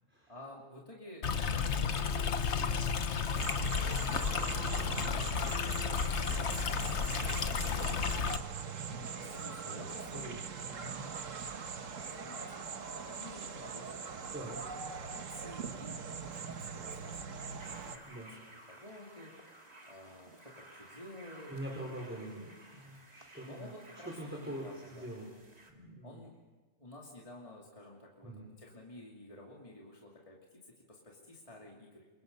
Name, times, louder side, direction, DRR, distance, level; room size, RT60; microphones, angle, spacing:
voice 1, 0.3-8.4 9.1-10.3 10.9-14.4 15.0-21.5 23.5-24.1 24.4-25.1 26.0-26.3 26.8-32.1, left 1 dB, 25° left, -2 dB, 2.8 m, -53 dB
Stream, 1.2-8.4, left 6 dB, 60° left, 1.3 m, -32 dB
sound 1, 3.4-18.0, right 6 dB, 75° right, 1.6 m, -41 dB
voice 2, 4.9-5.2 8.8-9.2 10.1-11.2 14.3-14.6 18.1-18.3 21.5-23.7 24.0-25.3 25.7-26.3 28.2-28.5, right 1 dB, 10° right, -3 dB, 4.6 m, -44 dB
sound 2, 17.6-25.7, right 1 dB, 30° right, 2.6 m, -55 dB
27.5 x 23.5 x 5.4 m, 1.3 s
omnidirectional pair, 1.3 m